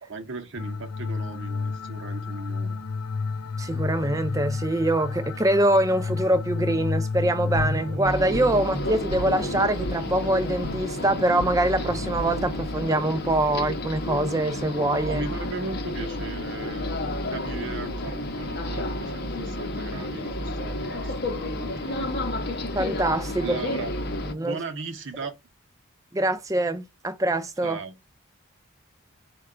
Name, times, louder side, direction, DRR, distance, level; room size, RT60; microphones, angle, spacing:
voice 1, 0.0-2.8 15.0-17.0 17.3-22.1 23.4-23.9 24.4-25.3 27.6-27.9, right 3 dB, 55° right, 0.7 m, -37 dB
sound 1, 0.6-8.0, left 4 dB, 90° left, 0.5 m, -30 dB
voice 2, 3.6-15.2 22.7-23.6 24.3-24.6 26.1-27.8, right 1 dB, 15° right, 0.4 m, -24 dB
sound 2, 7.5-12.6, right 1 dB, 90° right, 0.7 m, -35 dB
sound 3, 8.0-24.3, left 1 dB, 45° left, 0.7 m, -31 dB
4.7 x 2.2 x 4.8 m
head